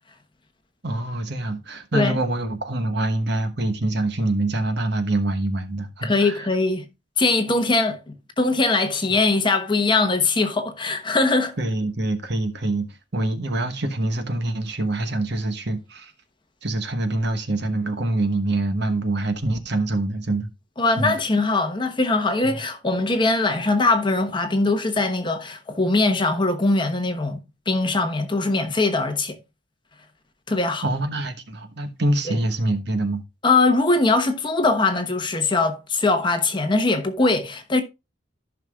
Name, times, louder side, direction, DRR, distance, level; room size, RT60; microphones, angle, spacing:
voice 1, 0.8-6.5 11.6-12.9 13.1-16.1 16.6-20.5 21.0-21.1 22.4-22.5 30.8-33.2, right 2 dB, 60° right, 1.2 m, -25 dB
voice 2, 6.0-6.9 7.2-11.6 20.8-27.4 27.7-29.4 30.5-30.9 32.3-32.4 33.4-37.8, left 3 dB, 25° left, 1.1 m, -21 dB
14.5 x 5.8 x 2.4 m
head